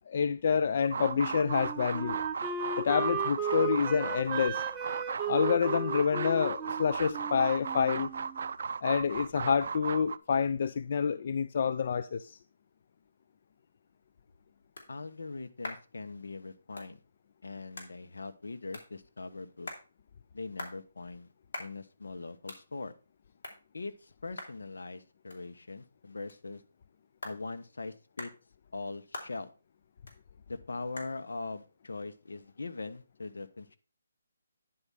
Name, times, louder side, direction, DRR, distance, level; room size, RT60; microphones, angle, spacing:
voice 1, 0.1-2.2 2.8-4.6 5.3-8.1 8.8-12.4, left 6 dB, 45° left, 0.4 m, -28 dB
sound 1, 0.8-10.2, right 5 dB, 55° right, 0.4 m, -36 dB
Wind instrument woodwind instrument, 1.0-8.5, right 6 dB, 15° right, 0.6 m, -36 dB
sound 2, 13.9-33.2, left 2 dB, 65° left, 3.1 m, -50 dB
voice 2, 14.9-17.0 17.4-19.7 20.3-21.3 21.6-22.9 23.7-26.6 27.2-28.3 28.7-29.5 30.5-33.8, left 3 dB, 80° left, 1.1 m, -41 dB
9.9 x 4.8 x 5.6 m
hypercardioid pair, 160°, 0 cm